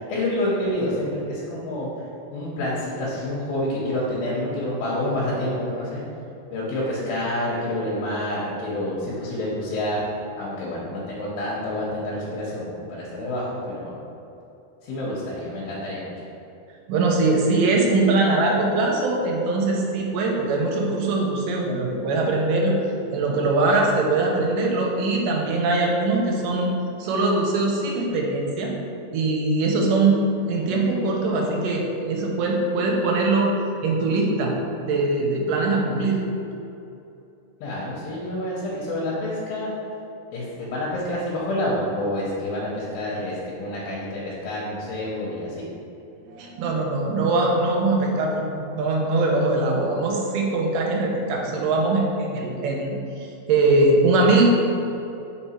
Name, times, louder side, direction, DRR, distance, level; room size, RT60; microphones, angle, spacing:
voice 1, 0.1-1.9 2.3-6.0 6.5-10.0 10.4-14.0 14.8-16.1 37.6-39.7 40.3-45.6, left 1 dB, 90° left, -6 dB, 2.8 m, -28 dB
voice 2, 16.9-22.7 23.1-26.7 27.0-28.7 29.1-33.5 33.8-34.5 34.8-36.2 46.3-48.4 48.7-54.5, right 2 dB, 75° right, -1 dB, 2.3 m, -22 dB
5.2 x 4.4 x 4.3 m, 2.8 s
omnidirectional pair, 4.1 m